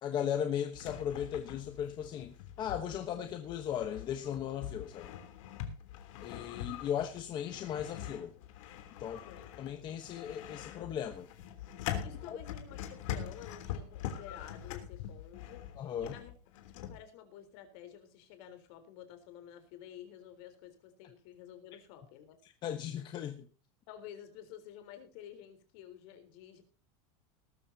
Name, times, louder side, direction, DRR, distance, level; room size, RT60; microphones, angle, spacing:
voice 1, 0.0-5.1 6.2-8.3 9.0-9.2 9.6-11.3 12.3-12.4 15.8-16.1 22.4-23.5, left 9 dB, 25° left, 7 dB, 1.1 m, -37 dB
sound 1, 0.7-17.0, left 10 dB, 70° left, 3.3 m, -43 dB
voice 2, 9.0-9.5 12.0-16.3 16.7-22.4 23.9-26.6, left 10 dB, 50° left, 8 dB, 3.9 m, -51 dB
19.5 x 13.5 x 2.8 m, 0.34 s
supercardioid pair, 175°, 17 cm